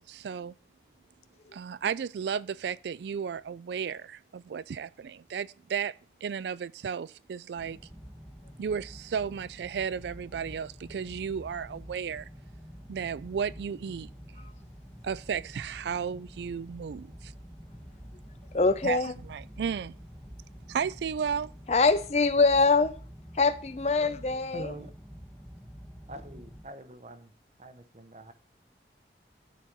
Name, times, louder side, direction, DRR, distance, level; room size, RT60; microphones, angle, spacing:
voice 1, 0.1-0.5 1.5-5.9 6.2-7.8 8.6-12.3 12.9-14.1 15.0-17.3 18.8-19.0 19.3-19.9 20.7-21.5, right 7 dB, 75° right, 0.3 m, -34 dB
sound 1, 7.6-26.6, equal, 5° left, 1.0 m, -48 dB
voice 2, 18.5-19.1 21.7-22.9 23.3-24.7, left 3 dB, 35° left, 0.5 m, -23 dB
voice 3, 24.5-24.9 26.1-27.3 27.6-28.3, right 1 dB, 40° right, 0.8 m, -44 dB
12.5 x 4.3 x 4.6 m
head